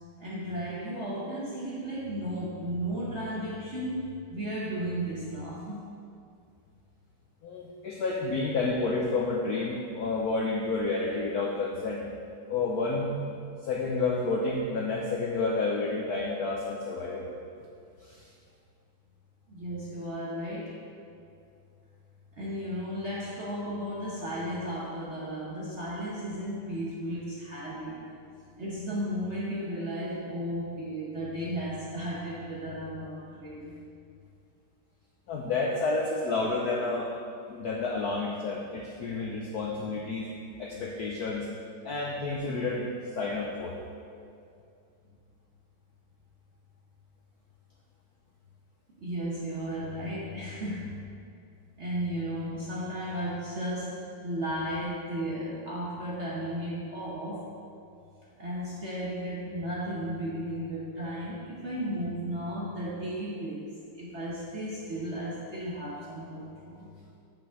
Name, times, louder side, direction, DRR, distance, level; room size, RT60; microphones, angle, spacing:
voice 1, 0.2-5.8 19.5-20.8 22.3-28.0 28.6-33.8 49.0-51.0 51.8-57.5 58.4-66.9, equal, 50° right, -6 dB, 0.8 m, -34 dB
voice 2, 7.4-12.0 12.5-13.3 13.6-17.3 18.0-18.3 35.3-37.1 37.5-40.3 40.6-41.5 41.8-42.9 43.2-43.8, left 3 dB, 90° left, 0 dB, 0.8 m, -30 dB
5.7 x 5.2 x 6.2 m, 2.4 s
omnidirectional pair, 2.4 m